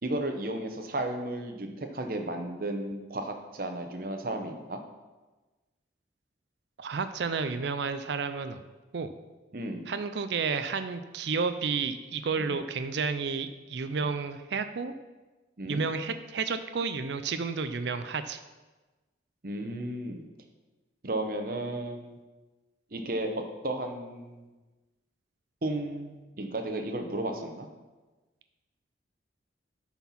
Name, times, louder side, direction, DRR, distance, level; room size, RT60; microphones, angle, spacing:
voice 1, 0.0-4.8 9.5-9.9 12.4-12.6 15.6-15.9 19.4-20.2 21.0-22.2 22.9-24.4 25.6-27.7, right 1 dB, 50° right, 5 dB, 0.9 m, -34 dB
voice 2, 6.8-8.6 8.9-9.1 9.9-14.9 15.6-18.4, right 5 dB, 65° right, 10 dB, 0.4 m, -31 dB
9.2 x 4.5 x 5.8 m, 1.2 s
head